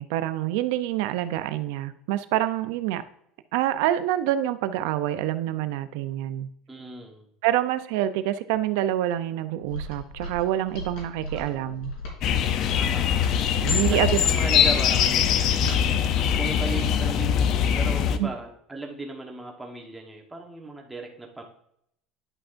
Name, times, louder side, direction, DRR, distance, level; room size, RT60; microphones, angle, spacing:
voice 1, 0.0-3.0 3.5-6.5 7.4-11.9 13.6-14.3 15.6-15.7 18.2-18.3, right 13 dB, 75° right, 12 dB, 0.5 m, -26 dB
voice 2, 6.7-7.3 11.3-11.7 12.7-13.4 13.9-15.3 16.3-21.4, right 3 dB, 10° right, 1 dB, 1.2 m, -37 dB
Mechanisms, 9.6-16.8, left 1 dB, 75° left, 3.4 m, -38 dB
sound 1, 12.2-18.2, left 8 dB, 45° left, 0.5 m, -22 dB
11.0 x 5.6 x 2.6 m, 0.72 s
cardioid pair, 150°, 0 cm